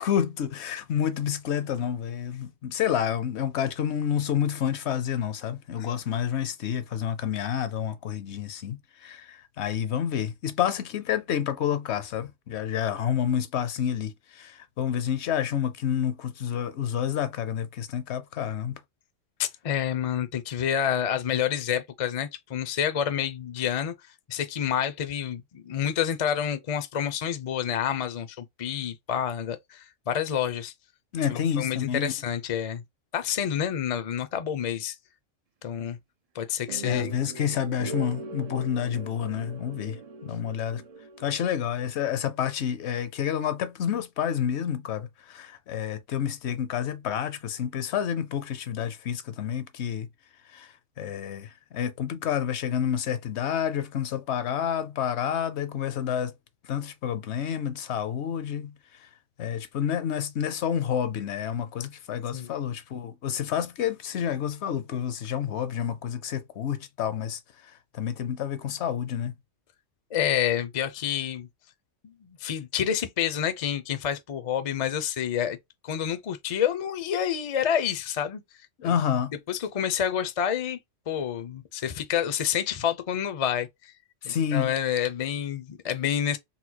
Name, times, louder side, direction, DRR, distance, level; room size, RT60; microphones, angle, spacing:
voice 1, 0.0-18.8 31.1-32.1 36.8-40.8 41.2-50.1 50.5-56.3 56.6-58.7 59.4-69.3 78.8-79.3 84.2-84.7, left 9 dB, 70° left, 0.8 m, -29 dB
voice 2, 19.4-23.9 24.3-30.7 31.3-32.8 33.1-35.0 35.6-36.0 36.3-37.1 62.3-62.5 70.1-71.5 72.0-75.6 75.8-78.4 78.8-78.9 79.5-80.8 81.1-83.9 84.2-86.4, left 9 dB, 50° left, 0.4 m, -28 dB
sound 1, 36.7-41.8, right 4 dB, 80° right, 0.3 m, -41 dB
4.1 x 2.2 x 2.8 m
omnidirectional pair, 1.3 m